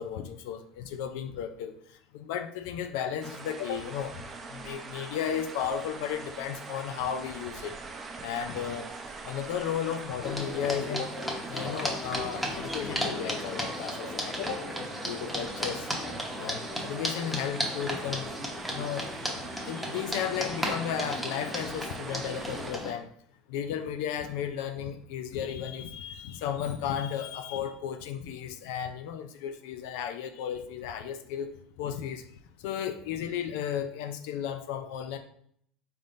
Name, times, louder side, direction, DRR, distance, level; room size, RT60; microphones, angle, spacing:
voice 1, 0.0-1.8 2.1-4.2 4.5-7.8 8.2-8.9 9.2-11.1 11.5-14.6 15.0-15.9 16.3-18.3 18.7-19.1 19.5-23.1 23.5-31.5 31.8-32.2 32.6-35.2, left 9 dB, 70° left, 8 dB, 0.3 m, -34 dB
sound 1, 3.2-22.7, right 4 dB, 30° right, 0.6 m, -43 dB
sound 2, 10.2-22.9, equal, ahead, 0.9 m, -35 dB
4.1 x 3.4 x 2.5 m, 0.66 s
hypercardioid pair, 85°, 0 cm